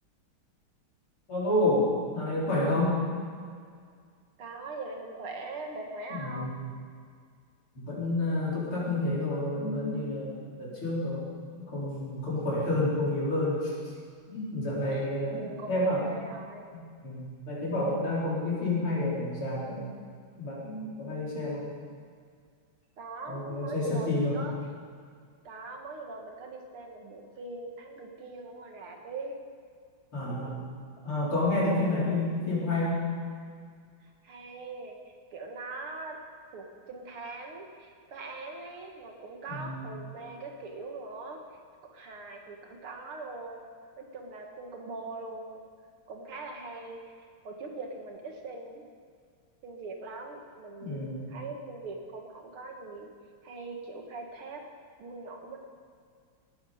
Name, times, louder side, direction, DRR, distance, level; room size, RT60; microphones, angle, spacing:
voice 1, 1.3-3.0 6.1-6.5 7.7-11.3 11.6-13.7 14.3-16.0 16.7-19.8 20.4-21.6 23.3-24.4 30.1-30.6 31.0-33.0 39.5-39.8 50.8-51.3, left 1 dB, 75° left, -7 dB, 5.1 m, -29 dB
voice 2, 4.4-6.5 14.0-14.1 14.9-15.1 15.4-16.7 23.0-24.5 25.4-29.3 31.7-32.2 34.2-35.0 35.3-36.2 36.5-41.4 41.9-43.7 44.0-45.6 46.1-47.0 47.4-48.8 49.6-53.1 53.4-54.6 55.0-55.6, right 3 dB, 80° right, 2 dB, 2.7 m, -41 dB
18.0 x 13.0 x 5.1 m, 2.1 s
omnidirectional pair, 2.4 m